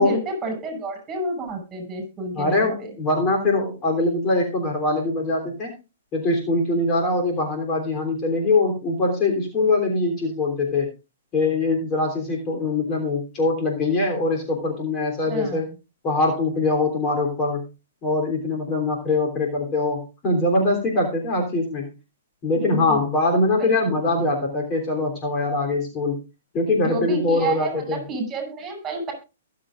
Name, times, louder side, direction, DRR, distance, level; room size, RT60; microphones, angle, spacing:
voice 1, 0.0-2.9 15.3-15.6 22.7-23.0 23.5-23.7 26.8-29.1, right 2 dB, 20° right, 4 dB, 6.3 m, -30 dB
voice 2, 2.3-5.7 6.1-10.9 11.3-15.7 16.0-17.6 18.0-21.9 22.4-26.2 26.5-28.0, left 2 dB, 30° left, 2 dB, 3.3 m, -22 dB
22.5 x 7.6 x 2.5 m, 0.29 s
hypercardioid pair, 130°, 0 cm